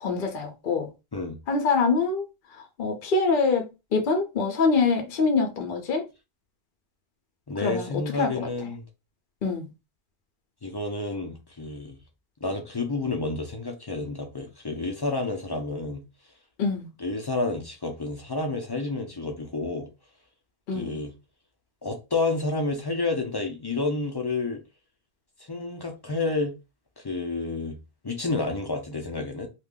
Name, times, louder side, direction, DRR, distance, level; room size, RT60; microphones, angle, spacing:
voice 1, 0.0-0.9 1.5-2.2 2.5-3.7 3.9-6.1 7.6-7.9 8.2-8.3 9.4-9.7 16.6-16.9 20.7-21.0, left 4 dB, 60° left, 0.8 m, -24 dB
voice 2, 7.5-8.8 10.6-12.0 12.4-16.0 17.0-19.9 20.7-21.1 21.8-24.6 25.5-26.6 27.0-27.8 28.0-29.5, left 3 dB, 35° left, 0.4 m, -30 dB
2.4 x 2.2 x 3.5 m
omnidirectional pair, 1.0 m